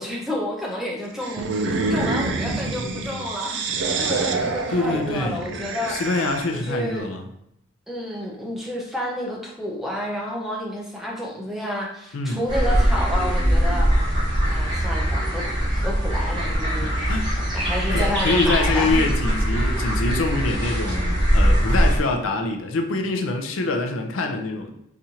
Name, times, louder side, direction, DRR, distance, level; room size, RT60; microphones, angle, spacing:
voice 1, 0.0-6.0 6.5-7.1 7.9-13.9 14.5-19.1, left 1 dB, ahead, -3 dB, 0.6 m, -30 dB
sound 1, 1.2-6.7, right 3 dB, 60° right, 0.4 m, -27 dB
voice 2, 4.7-5.4 5.9-7.2 12.1-12.4 16.7-17.4 17.7-24.7, left 3 dB, 85° left, 4 dB, 0.5 m, -25 dB
sound 2, 12.5-22.0, equal, 20° right, 0.9 m, -21 dB
4.1 x 2.5 x 2.8 m, 0.76 s
head